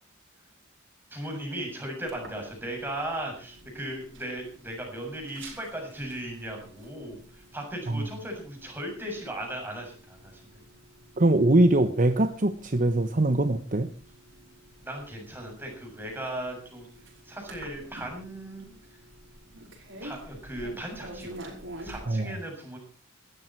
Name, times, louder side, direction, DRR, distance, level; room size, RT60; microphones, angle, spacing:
voice 1, 1.1-10.6 14.8-19.0 20.0-21.5 21.8-22.8, right 1 dB, 10° right, 1 dB, 7.1 m, -37 dB
sound 1, 2.1-22.0, right 1 dB, 65° right, 5.5 m, -49 dB
voice 2, 11.2-13.9 22.1-22.3, right 1 dB, 40° right, 9 dB, 1.0 m, -22 dB
17.5 x 13.5 x 4.6 m, 0.38 s
head